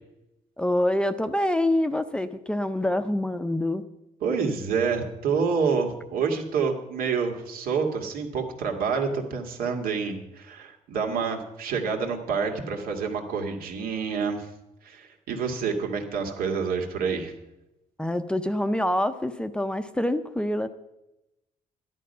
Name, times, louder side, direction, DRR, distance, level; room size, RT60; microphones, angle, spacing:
voice 1, 0.6-3.8 18.0-20.7, left 1 dB, 5° left, 10 dB, 0.5 m, -26 dB
voice 2, 4.2-14.5 14.8-17.3, right 5 dB, 85° right, 2 dB, 2.4 m, -28 dB
12.5 x 11.0 x 5.5 m, 0.93 s
cardioid pair, 160°, 15 cm